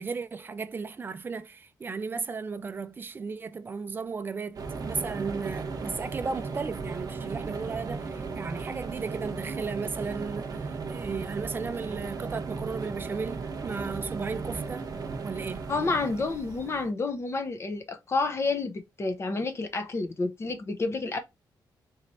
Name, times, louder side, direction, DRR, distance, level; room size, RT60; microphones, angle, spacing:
voice 1, 0.0-14.9 15.2-15.7, right 5 dB, 25° right, 0.4 m, -35 dB
sound 1, 4.5-16.9, right 4 dB, 50° right, 0.8 m, -36 dB
voice 2, 15.7-21.2, left 3 dB, 35° left, 0.7 m, -29 dB
4.1 x 3.2 x 2.6 m
wide cardioid pair, 140°, 8 cm